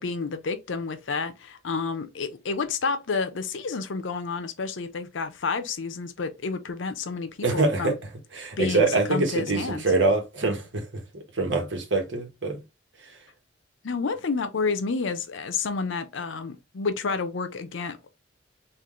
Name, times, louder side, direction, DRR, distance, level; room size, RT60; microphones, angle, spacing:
voice 1, 0.0-8.0 8.6-9.8 13.8-18.1, left 4 dB, 85° left, 0.6 m, -30 dB
voice 2, 7.4-7.9 8.3-12.6, right 3 dB, 70° right, 1.1 m, -25 dB
3.8 x 2.5 x 3.0 m
head